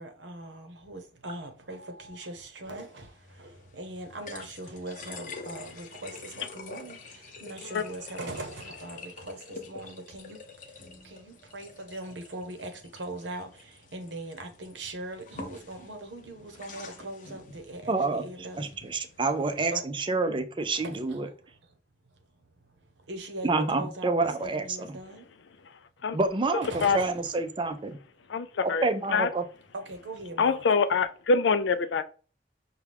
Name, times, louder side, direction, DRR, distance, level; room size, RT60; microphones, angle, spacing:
voice 1, 0.0-18.6 19.4-19.8 20.7-21.2 22.8-25.3 26.6-27.1 29.7-30.6, right 1 dB, 85° right, 0.9 m, -41 dB
sound 1, 2.6-19.7, left 4 dB, 50° left, 0.7 m, -47 dB
voice 2, 17.9-21.3 23.4-25.0 26.1-26.7 26.9-28.0 28.6-29.4, right 3 dB, 30° right, 0.5 m, -28 dB
voice 3, 28.3-28.8 29.1-29.3 30.4-32.0, left 5 dB, 80° left, 0.4 m, -24 dB
5.8 x 2.3 x 3.4 m
head